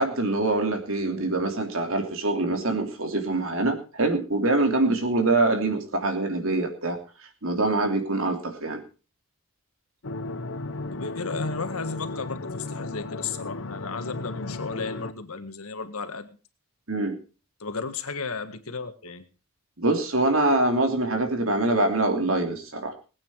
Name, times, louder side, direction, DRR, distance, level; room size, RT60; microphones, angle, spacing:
voice 1, 0.0-7.0 7.4-8.8 16.9-17.2 19.8-22.9, right 2 dB, 65° right, 4 dB, 3.0 m, -24 dB
sound 1, 10.0-15.1, left 2 dB, 60° left, 0.9 m, -35 dB
voice 2, 10.9-16.3 17.6-19.2, left 4 dB, 80° left, 9 dB, 1.7 m, -34 dB
21.0 x 8.8 x 4.7 m, 0.35 s
head